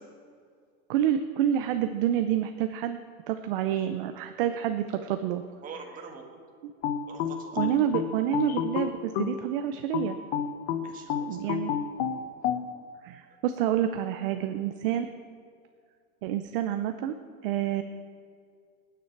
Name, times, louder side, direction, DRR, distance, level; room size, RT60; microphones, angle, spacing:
voice 1, 0.9-3.0 3.3-5.4 7.6-10.2 11.3-11.7 13.0-15.1 16.2-17.2 17.4-17.8, right 10 dB, 40° right, 8 dB, 0.6 m, -28 dB
voice 2, 5.6-6.4 7.1-7.7 10.8-11.6, right 5 dB, 20° right, 2 dB, 1.5 m, -45 dB
sound 1, 6.8-9.4 9.9-12.6, left 8 dB, 50° left, 1.1 m, -29 dB
27.5 x 9.4 x 4.6 m, 2.2 s
supercardioid pair, 165°, 44 cm